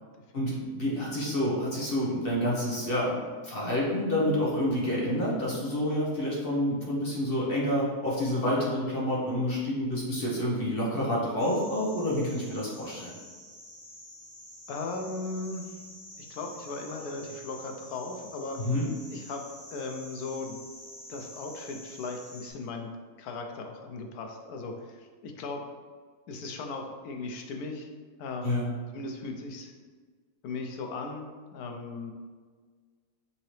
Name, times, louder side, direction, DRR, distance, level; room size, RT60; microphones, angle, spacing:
voice 1, 0.3-3.1 3.4-13.2 18.6-18.9 28.4-28.7, left 1 dB, 45° left, -5 dB, 1.0 m, -28 dB
sound 1, 11.4-22.5, left 1 dB, 70° left, 1.6 m, -48 dB
voice 2, 14.7-15.7 16.2-18.6 19.1-19.4 19.7-20.5 21.1-22.9 23.2-25.6 26.3-27.9 28.2-28.7 28.9-29.7 30.4-32.1, left 3 dB, 90° left, 3 dB, 1.2 m, -37 dB
5.7 x 2.8 x 3.1 m, 1.5 s
omnidirectional pair, 1.6 m